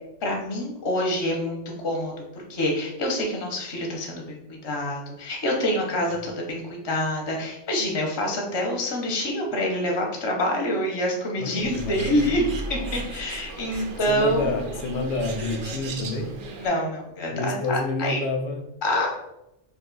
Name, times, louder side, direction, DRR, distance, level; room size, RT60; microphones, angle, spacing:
voice 1, 0.2-14.4 16.6-18.2 18.8-19.1, left 1 dB, 30° left, 0 dB, 0.5 m, -26 dB
voice 2, 11.4-12.3 13.8-16.4 17.3-18.7, left 2 dB, 85° left, 4 dB, 0.9 m, -29 dB
Bird, 11.6-16.7, right 2 dB, 65° right, 0.5 m, -36 dB
2.6 x 2.3 x 3.8 m, 0.86 s
omnidirectional pair, 1.3 m